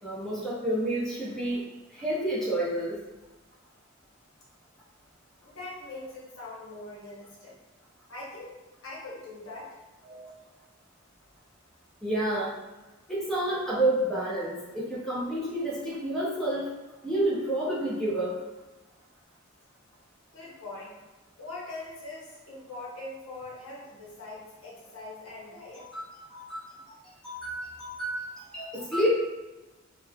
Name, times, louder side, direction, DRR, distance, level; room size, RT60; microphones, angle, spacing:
voice 1, 0.0-1.6 1.9-3.0 10.1-10.3 12.0-12.6 13.1-16.7 17.0-18.4 25.9-26.0 26.3-26.6 27.2-29.1, right 1 dB, 5° left, -8 dB, 0.6 m, -29 dB
voice 2, 5.4-7.6 8.1-8.5 8.8-9.7 20.3-21.0 21.4-25.9, left 2 dB, 80° left, -6 dB, 0.9 m, -42 dB
2.9 x 2.3 x 2.2 m, 1.1 s
head